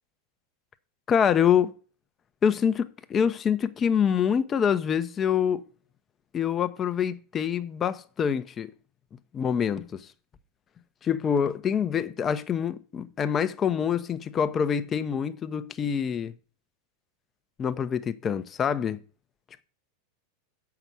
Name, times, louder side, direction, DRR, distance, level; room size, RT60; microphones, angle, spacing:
voice 1, 1.1-1.7 2.4-5.6 6.3-8.7 9.3-10.1 11.0-16.3 17.6-19.0, left 8 dB, 30° left, 0.9 m, -25 dB
7.9 x 5.9 x 7.6 m
figure-of-eight pair, 90°, 0 cm